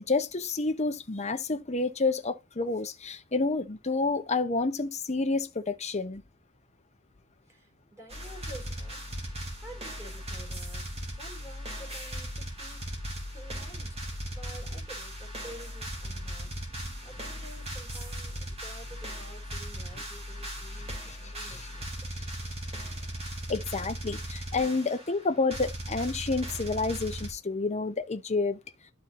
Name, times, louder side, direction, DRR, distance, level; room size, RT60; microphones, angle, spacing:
voice 1, 0.0-6.2 21.0-21.2 21.4-21.6 23.5-28.6, left 3 dB, 30° left, 1.0 m, -29 dB
voice 2, 7.4-9.1 9.6-12.9 13.2-21.9, right 1 dB, 15° right, 4.5 m, -50 dB
sound 1, 8.1-27.3, equal, 30° right, 2.8 m, -38 dB
12.0 x 4.5 x 2.7 m
head